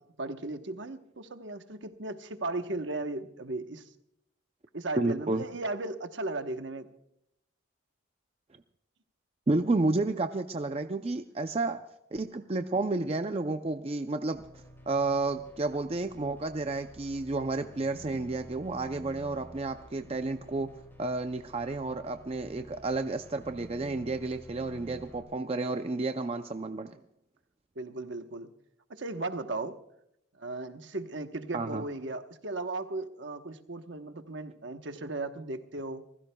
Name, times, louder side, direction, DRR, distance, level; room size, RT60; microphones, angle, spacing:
voice 1, 0.2-3.9 4.7-6.9 27.7-28.5 28.9-29.8 30.4-36.1, right 2 dB, 65° right, 7 dB, 1.1 m, -36 dB
voice 2, 5.0-5.4 9.5-11.8 12.1-14.4 14.9-20.7 21.0-27.0 31.5-31.8, right 3 dB, 30° right, 7 dB, 0.5 m, -31 dB
sound 1, 14.3-25.2, right 1 dB, 10° left, 3.5 m, -52 dB
28.5 x 15.5 x 2.3 m, 0.78 s
head